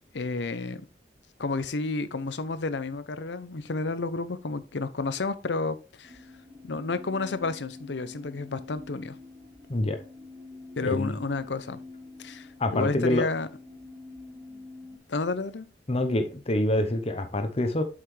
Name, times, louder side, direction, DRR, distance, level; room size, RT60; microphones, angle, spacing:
voice 1, 0.1-0.9 1.4-6.2 6.6-9.2 10.8-11.8 12.2-13.5 15.1-15.7, left 3 dB, 85° left, 0.7 m, -31 dB
sound 1, 6.0-15.0, left 3 dB, 20° right, 2.7 m, -46 dB
voice 2, 10.8-11.2 12.6-13.2 15.9-17.8, left 1 dB, 35° left, 0.9 m, -26 dB
8.0 x 5.8 x 3.3 m
head